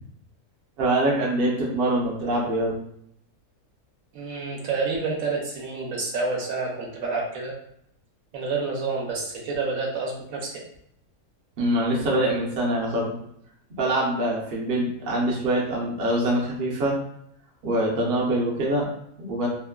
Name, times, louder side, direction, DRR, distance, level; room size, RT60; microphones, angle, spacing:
voice 1, 0.8-2.7 11.6-13.1 13.7-16.9 17.6-18.9 19.2-19.5, right 1 dB, 55° right, -3 dB, 0.7 m, -24 dB
voice 2, 4.1-7.5 8.3-10.5, right 4 dB, 70° right, -1 dB, 1.0 m, -28 dB
3.0 x 2.1 x 2.2 m, 0.73 s
omnidirectional pair, 1.6 m